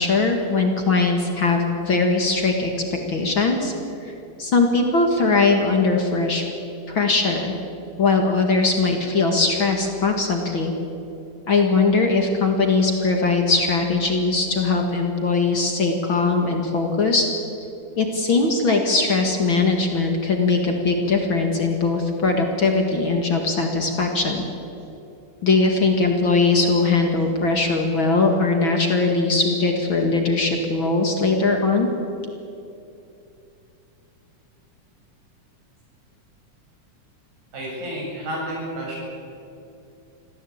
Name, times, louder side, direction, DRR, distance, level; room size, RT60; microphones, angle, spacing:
voice 1, 0.0-2.7 3.1-3.7 4.4-6.4 6.9-7.5 8.0-10.7 11.5-17.3 18.0-24.4 25.4-31.9, left 3 dB, 45° left, 3 dB, 2.4 m, -20 dB
voice 2, 37.5-39.0, right 1 dB, 80° right, -4 dB, 9.4 m, -30 dB
25.5 x 16.0 x 8.8 m, 2.8 s
omnidirectional pair, 3.6 m